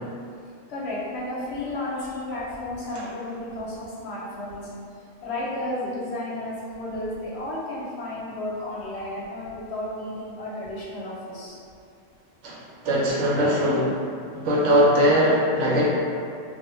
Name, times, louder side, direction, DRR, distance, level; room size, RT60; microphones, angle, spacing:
voice 1, 0.7-4.7 5.2-11.6, left 1 dB, 65° left, -7 dB, 0.8 m, -32 dB
voice 2, 12.4-14.0 14.3-15.9, equal, 75° right, -6 dB, 0.9 m, -21 dB
2.3 x 2.1 x 3.0 m, 2.4 s
omnidirectional pair, 1.3 m